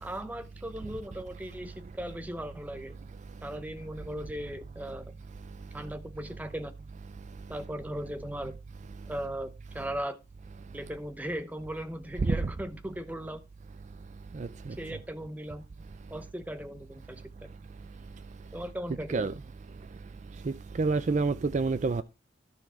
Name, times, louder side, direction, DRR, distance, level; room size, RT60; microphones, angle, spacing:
voice 1, 0.0-3.0 3.4-5.1 5.7-6.7 7.5-8.5 9.1-10.2 10.7-13.4 14.8-15.6 16.1-17.2 18.5-19.3, right 1 dB, 10° right, 0.7 m, -38 dB
voice 2, 20.8-22.0, right 3 dB, 40° right, 0.4 m, -27 dB
13.0 x 4.6 x 4.3 m
head